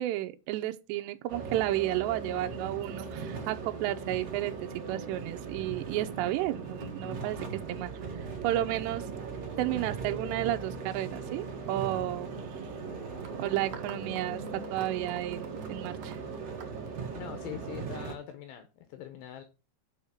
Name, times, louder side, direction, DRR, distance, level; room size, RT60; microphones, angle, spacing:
voice 1, 0.0-7.9 8.4-9.3 9.6-12.3 13.4-16.2, right 14 dB, 80° right, 2.9 m, -32 dB
sound 1, 1.3-18.1, right 5 dB, 45° right, 2.7 m, -39 dB
sound 2, 13.2-17.6, right 7 dB, 65° right, 1.8 m, -49 dB
voice 2, 17.1-19.4, left 10 dB, 75° left, 2.9 m, -43 dB
7.2 x 6.3 x 5.9 m
omnidirectional pair, 5.1 m